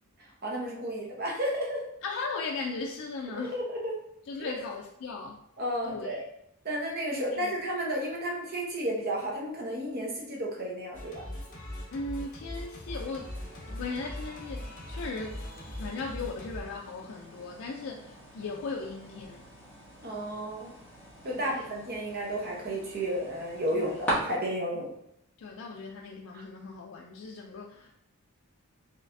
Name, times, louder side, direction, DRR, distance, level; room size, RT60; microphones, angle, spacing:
voice 1, 0.4-1.8 3.4-4.0 4.4-4.6 5.6-6.2 6.6-11.2 20.0-20.8 21.2-24.9, equal, 45° right, 1.0 m, -32 dB
voice 2, 2.0-3.6 4.3-5.4 5.8-6.2 7.3-7.5 11.9-13.3 13.7-19.4 21.4-21.7 23.7-24.0 25.4-27.9, left 3 dB, 70° left, 0.4 m, -38 dB
Singing, 10.9-16.6, left 1 dB, 40° left, 0.9 m, -40 dB
sound 1, 12.9-24.1, right 1 dB, 10° left, 1.4 m, -43 dB
4.2 x 3.3 x 2.6 m
head